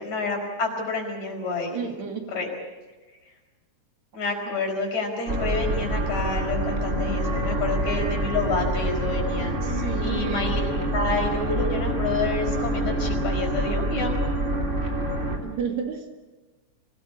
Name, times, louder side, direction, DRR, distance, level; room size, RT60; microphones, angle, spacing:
voice 1, 0.0-1.8 2.3-2.5 4.1-10.6 10.9-14.2, left 3 dB, 70° left, 2 dB, 6.2 m, -29 dB
voice 2, 1.7-2.3 9.6-10.6 15.4-16.2, right 6 dB, 65° right, 4 dB, 3.6 m, -32 dB
sound 1, 5.3-15.4, right 1 dB, 25° right, 3.7 m, -26 dB
25.0 x 19.0 x 8.6 m, 1.2 s
omnidirectional pair, 3.4 m